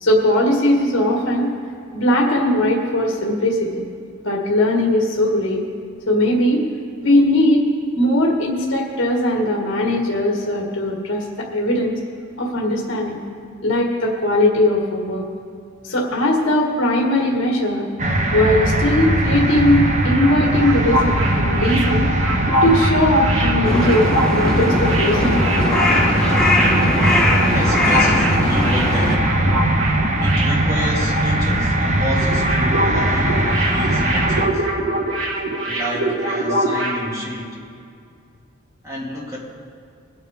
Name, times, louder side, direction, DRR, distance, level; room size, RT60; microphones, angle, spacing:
voice 1, 0.0-1.5 1.9-3.8 4.2-5.6 6.1-6.6 7.0-7.6 8.0-12.0 12.4-13.2 13.6-15.2 15.8-17.9 18.3-22.1 22.6-25.5, left 1 dB, 60° left, -1 dB, 1.7 m, -19 dB
sound 1, 18.0-34.5, right 1 dB, 35° right, 1.1 m, -20 dB
sound 2, 19.8-31.4 31.6-31.8 32.1-37.1, right 1 dB, 90° right, 1.7 m, -25 dB
Crow, 23.6-29.2, left 1 dB, 5° left, 1.6 m, -20 dB
voice 2, 27.5-29.4 30.2-34.7 35.7-37.6 38.8-39.4, equal, 15° right, -5 dB, 2.4 m, -30 dB
21.5 x 8.9 x 3.6 m, 2.3 s
head